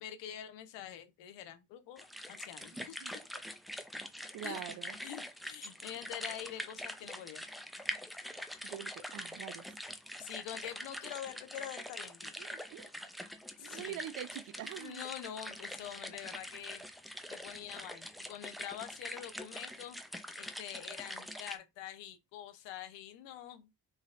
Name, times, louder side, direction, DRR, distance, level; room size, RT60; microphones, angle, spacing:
voice 1, 0.0-3.0 4.4-4.6 5.0-7.4 10.2-12.3 13.6-14.0 14.8-16.8 17.3-20.0 20.4-23.7, left 11 dB, 85° left, 0.7 m, -45 dB
sound 1, 2.0-21.6, equal, ahead, 0.5 m, -44 dB
voice 2, 2.8-3.1 4.3-5.0 8.6-9.8 12.4-12.9 13.6-15.0, right 12 dB, 50° right, 0.5 m, -45 dB
3.2 x 2.6 x 2.5 m
supercardioid pair, 50°, 43 cm